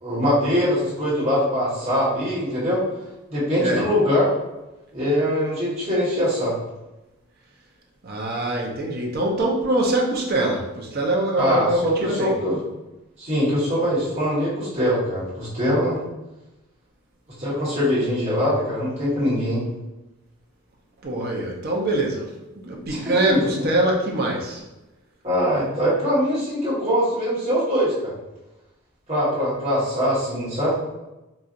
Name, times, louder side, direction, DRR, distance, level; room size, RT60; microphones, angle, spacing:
voice 1, 0.0-2.8 3.3-4.3 4.9-6.5 11.4-12.6 13.2-16.0 17.4-19.6 22.9-23.7 25.2-28.2 29.1-30.8, equal, 30° right, -9 dB, 1.4 m, -22 dB
voice 2, 8.0-12.4 21.0-24.6, right 1 dB, 45° right, -1 dB, 0.6 m, -23 dB
4.1 x 2.4 x 2.5 m, 1.0 s
head